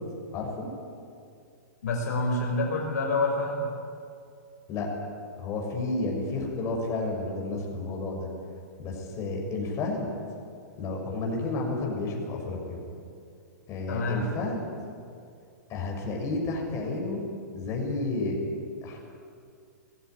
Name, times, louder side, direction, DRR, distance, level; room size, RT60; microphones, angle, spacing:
voice 1, 0.3-0.7 4.7-4.9 5.4-8.3 8.8-10.1 10.7-12.8 13.7-14.6 15.7-17.2 17.5-18.4 18.8-19.0, left 2 dB, 30° left, 0 dB, 6.3 m, -31 dB
voice 2, 1.8-3.7 13.9-14.2, left 2 dB, 70° left, 0 dB, 5.3 m, -27 dB
19.5 x 15.5 x 9.8 m, 2.4 s
hypercardioid pair, 115°, 9 cm